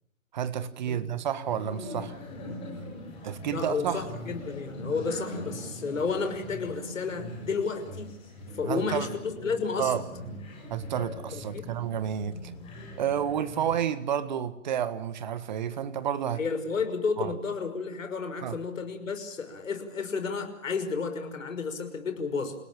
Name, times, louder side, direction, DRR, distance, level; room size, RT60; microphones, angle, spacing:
voice 1, 0.3-2.2 3.2-4.0 8.6-9.1 9.8-10.0 10.7-12.4 13.0-16.4 17.2-17.3 18.4-18.6, right 9 dB, 30° right, 13 dB, 1.6 m, -30 dB
sound 1, 1.4-13.8, left 1 dB, 15° left, 7.7 m, -41 dB
voice 2, 3.5-8.1 8.5-9.9 11.3-11.6 13.5-13.6 16.4-22.6, left 5 dB, 65° left, 8 dB, 5.9 m, -32 dB
29.5 x 18.0 x 8.8 m, 0.79 s
hypercardioid pair, 155°, 43 cm